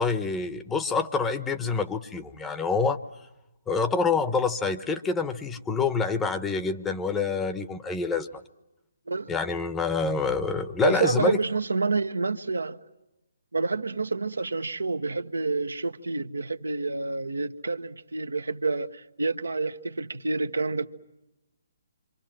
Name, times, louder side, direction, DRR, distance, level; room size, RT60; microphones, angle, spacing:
voice 1, 0.0-3.0 3.7-8.4 9.3-11.4, left 4 dB, 10° left, 10 dB, 0.9 m, -27 dB
voice 2, 10.8-12.8 13.5-20.9, right 3 dB, 80° right, 9 dB, 1.1 m, -28 dB
27.0 x 25.5 x 7.7 m, 0.97 s
figure-of-eight pair, 145°, 0 cm